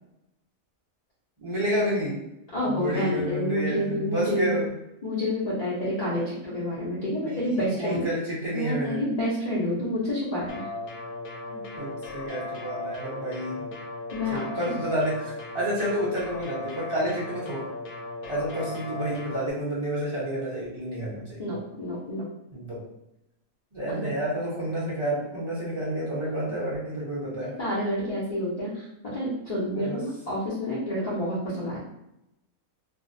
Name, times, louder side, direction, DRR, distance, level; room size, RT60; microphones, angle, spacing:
voice 1, 1.4-2.2 2.6-4.7 7.0-9.0 11.5-13.7 14.3-17.7 18.2-21.4 22.5-22.8 23.7-27.5 29.7-30.0, right 1 dB, 30° right, -7 dB, 0.6 m, -30 dB
voice 2, 2.5-4.6 5.0-8.1 8.5-10.6 14.1-14.5 21.4-22.3 23.9-24.1 27.4-28.9 29.1-31.8, left 1 dB, 50° left, -9 dB, 0.5 m, -28 dB
sound 1, 10.5-19.5, left 2 dB, 80° left, 1.0 m, -37 dB
2.6 x 2.0 x 2.5 m, 0.84 s
omnidirectional pair, 1.5 m